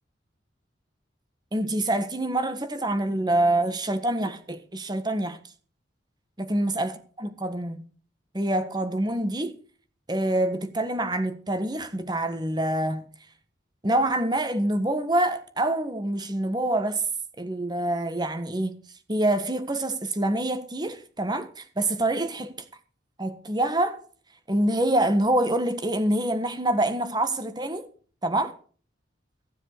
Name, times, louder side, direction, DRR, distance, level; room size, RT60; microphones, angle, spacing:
voice 1, 1.5-5.4 6.5-7.8 8.3-9.5 10.1-13.1 13.8-17.0 17.4-18.8 19.1-22.7 23.2-24.0 24.5-27.9 28.2-28.5, right 1 dB, 20° right, 1.4 m, -26 dB
15.5 x 7.3 x 6.6 m
head